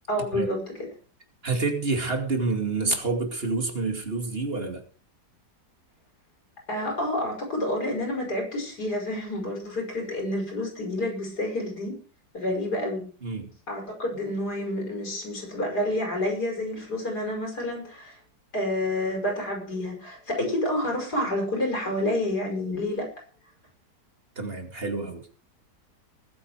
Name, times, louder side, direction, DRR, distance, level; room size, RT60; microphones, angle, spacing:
voice 1, 0.1-0.6 6.7-11.9 12.3-13.0 13.7-18.1 18.5-23.1, left 1 dB, 65° left, 1 dB, 6.1 m, -29 dB
voice 2, 1.4-4.8 13.2-13.5 24.4-25.3, right 3 dB, 35° right, 5 dB, 2.7 m, -28 dB
20.5 x 8.4 x 4.9 m, 0.40 s
omnidirectional pair, 1.9 m